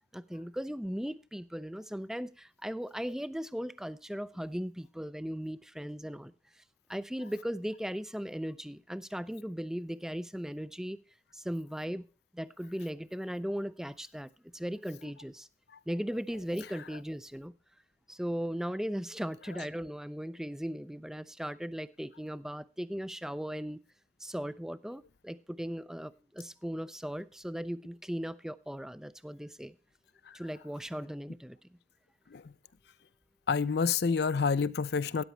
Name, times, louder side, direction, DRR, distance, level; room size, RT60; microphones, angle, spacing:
voice 1, 0.1-6.6 6.9-11.0 11.3-12.0 12.3-15.5 15.9-17.5 18.1-23.8 24.2-29.7 30.3-31.6 34.1-34.2, equal, 5° right, 0.4 m, -37 dB
voice 2, 33.5-35.2, left 5 dB, 60° left, 0.5 m, -28 dB
13.0 x 10.0 x 3.2 m
head